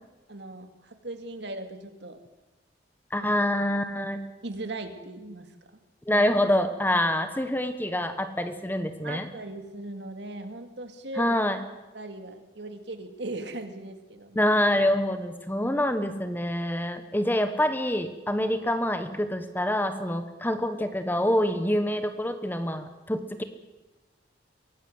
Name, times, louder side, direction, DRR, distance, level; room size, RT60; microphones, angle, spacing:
voice 1, 0.3-2.2 3.2-3.3 4.4-5.8 6.1-6.2 9.0-11.4 11.9-14.5, right 2 dB, 65° right, 7 dB, 2.4 m, -38 dB
voice 2, 3.1-4.2 6.1-9.3 11.2-11.6 14.3-23.4, left 1 dB, 10° left, 9 dB, 1.3 m, -26 dB
23.5 x 17.5 x 8.0 m, 1.1 s
head